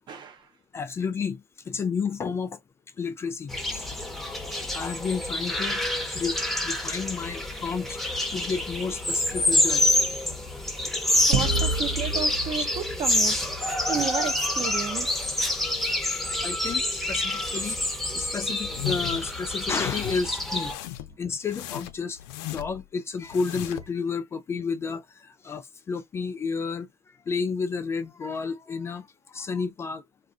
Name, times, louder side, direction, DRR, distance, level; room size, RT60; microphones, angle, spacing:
voice 1, 0.1-0.5 10.9-11.0 11.3-13.4 13.6-15.3, right 7 dB, 35° right, 0.7 m, -33 dB
voice 2, 0.7-1.4 1.7-2.6 3.0-3.9 4.5-5.8 6.1-6.4 6.6-8.0 8.3-9.9 14.0-14.1 16.4-17.8 18.1-20.7 21.2-26.9 27.3-30.0, left 5 dB, 20° left, 0.3 m, -31 dB
sound 1, 3.5-20.7, left 1 dB, ahead, 0.7 m, -27 dB
sound 2, 11.3-13.9, right 4 dB, 85° right, 1.0 m, -29 dB
sound 3, 18.6-19.2 19.6-20.2 20.6-21.1 21.5-22.8 23.2-23.9, left 15 dB, 85° left, 0.5 m, -36 dB
2.5 x 2.3 x 3.7 m
cardioid pair, 140°, 13 cm